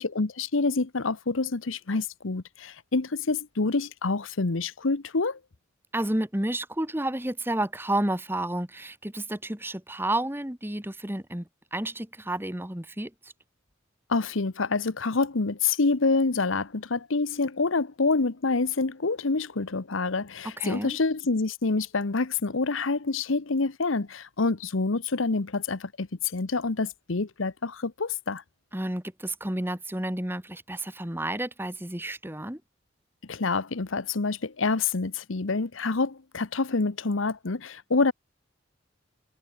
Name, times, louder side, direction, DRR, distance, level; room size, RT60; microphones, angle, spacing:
voice 1, 0.0-5.4 14.1-28.4 33.3-38.1, left 3 dB, 80° left, 1.0 m, -27 dB
voice 2, 5.9-13.3 20.6-21.0 28.7-32.6, right 1 dB, 10° right, 1.7 m, -31 dB
head